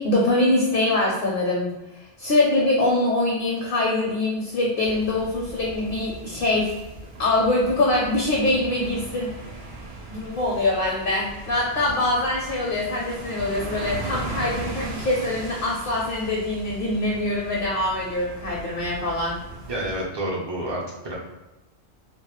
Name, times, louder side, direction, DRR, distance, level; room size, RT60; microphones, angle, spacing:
voice 1, 0.0-6.7 7.2-9.3 10.1-19.4, left 2 dB, 60° left, -3 dB, 0.6 m, -23 dB
sound 1, 4.8-20.1, right 2 dB, 70° right, 0.8 m, -38 dB
voice 2, 19.7-21.1, right 1 dB, 35° right, -4 dB, 0.4 m, -29 dB
2.2 x 2.0 x 3.0 m, 1.0 s
omnidirectional pair, 1.2 m